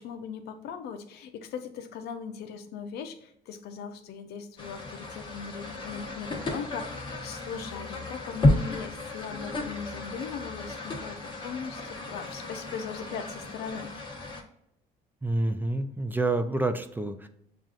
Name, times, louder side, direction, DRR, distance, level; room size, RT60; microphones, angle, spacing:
voice 1, 0.0-11.2 11.4-13.9, left 6 dB, 75° left, 7 dB, 0.7 m, -39 dB
sound 1, 4.6-14.4, left 2 dB, 25° left, 1.2 m, -32 dB
voice 2, 15.2-17.3, right 2 dB, 10° right, 7 dB, 0.4 m, -28 dB
7.2 x 2.5 x 2.4 m, 0.76 s
cardioid pair, 110°, 17 cm